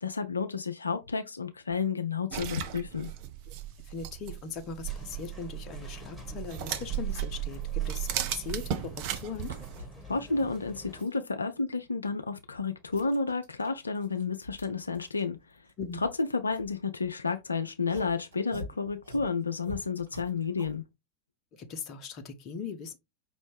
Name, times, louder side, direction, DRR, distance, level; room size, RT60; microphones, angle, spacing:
voice 1, 0.0-3.1 10.1-15.6 16.0-20.8, left 4 dB, 75° left, 0.4 m, -31 dB
sound 1, 2.3-9.8, right 12 dB, 45° right, 0.6 m, -35 dB
voice 2, 3.8-9.5 15.8-16.0 21.5-23.0, left 5 dB, 35° left, 0.9 m, -39 dB
sound 2, 4.8-11.0, left 2 dB, ahead, 1.5 m, -49 dB
sound 3, 6.6-8.6 8.9-11.2 11.7-17.3 17.8-20.8, left 1 dB, 75° right, 2.3 m, -48 dB
5.3 x 3.1 x 3.3 m
figure-of-eight pair, 90°, 0 cm